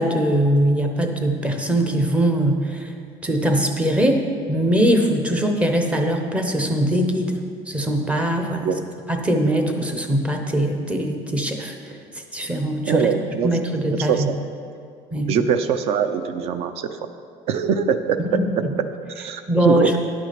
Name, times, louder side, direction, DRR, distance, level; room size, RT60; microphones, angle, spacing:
voice 1, 0.0-2.9 3.2-7.4 7.7-8.7 9.1-12.0 12.3-13.1 13.4-14.3 15.1-15.4 18.2-18.7 19.5-19.9, right 1 dB, 10° right, 4 dB, 0.7 m, -21 dB
voice 2, 12.9-13.5 13.9-14.2 15.3-16.9 17.5-18.6 19.2-20.0, right 7 dB, 50° right, 10 dB, 0.5 m, -22 dB
10.0 x 6.1 x 5.9 m, 2.3 s
cardioid pair, 165°, 14 cm